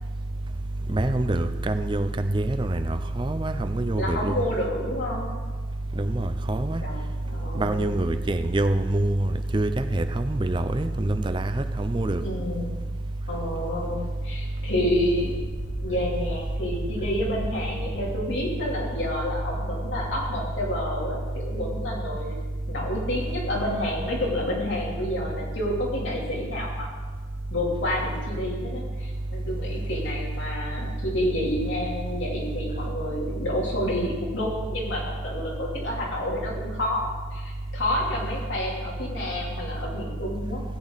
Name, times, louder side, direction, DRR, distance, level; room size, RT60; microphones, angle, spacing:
voice 1, 0.9-4.3 6.0-6.8 7.6-9.3 9.5-12.2, right 1 dB, 25° right, 0.5 m, -25 dB
voice 2, 4.0-5.3 6.8-7.9 12.2-12.8 13.3-15.3 15.8-22.4 22.7-26.9 27.5-40.6, left 1 dB, 70° left, 3.3 m, -29 dB
sound 1, 15.2-20.5, equal, 30° left, 1.4 m, -39 dB
15.5 x 8.5 x 4.1 m
head